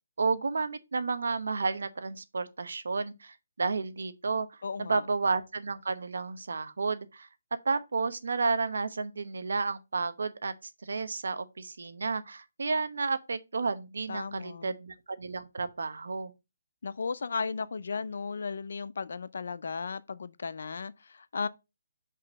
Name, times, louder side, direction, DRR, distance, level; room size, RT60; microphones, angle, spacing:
voice 1, 0.2-7.3 7.6-10.5 10.8-16.3, right 4 dB, 80° right, 0.9 m, -31 dB
voice 2, 4.6-5.1 14.1-14.8 16.8-21.5, left 5 dB, 70° left, 0.5 m, -35 dB
5.5 x 3.9 x 5.2 m
hypercardioid pair, 160°, 0 cm